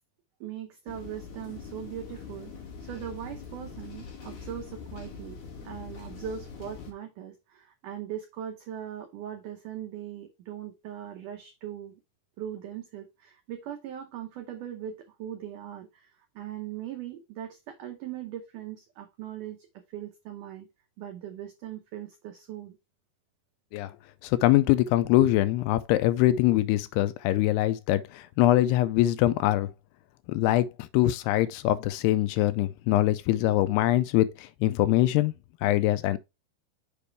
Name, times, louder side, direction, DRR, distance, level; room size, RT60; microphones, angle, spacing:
voice 1, 0.4-2.5 2.8-5.4 5.6-12.0 12.4-20.7 21.0-22.8, right 10 dB, 90° right, 1.8 m, -40 dB
sound 1, 0.9-6.9, left 5 dB, 50° left, 3.1 m, -43 dB
voice 2, 24.2-29.7 30.3-35.3 35.6-36.2, left 15 dB, 85° left, 2.5 m, -23 dB
6.9 x 5.1 x 3.4 m
omnidirectional pair, 4.8 m